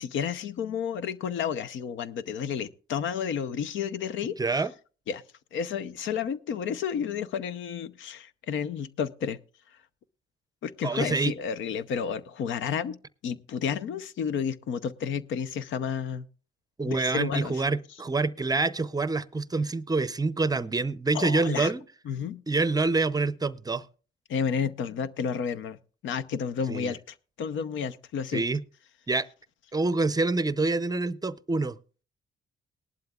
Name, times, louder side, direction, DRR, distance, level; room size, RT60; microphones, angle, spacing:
voice 1, 0.0-4.6 5.1-5.2 5.5-9.4 10.6-13.0 13.2-16.3 16.9-17.6 21.1-21.7 22.1-22.4 24.3-25.8 26.0-28.4, left 7 dB, 75° left, 0.7 m, -31 dB
voice 2, 4.4-4.7 10.8-11.3 16.8-21.8 22.5-23.8 26.7-26.9 28.3-28.6 29.1-29.3 29.7-31.8, right 3 dB, 20° right, 0.6 m, -26 dB
19.0 x 11.5 x 2.4 m
cardioid pair, 90°, 20 cm